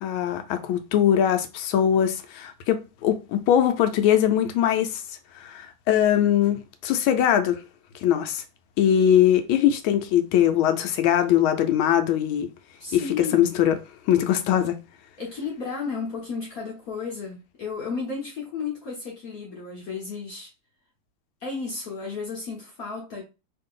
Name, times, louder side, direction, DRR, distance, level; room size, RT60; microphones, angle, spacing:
voice 1, 0.0-5.0 5.4-7.6 8.0-8.4 8.8-12.5 12.9-13.8 14.1-14.8, left 10 dB, 75° left, 1.3 m, -21 dB
voice 2, 12.8-13.5 15.2-20.5 21.4-23.2, left 5 dB, 55° left, 1.1 m, -33 dB
3.3 x 2.6 x 3.6 m
omnidirectional pair, 2.4 m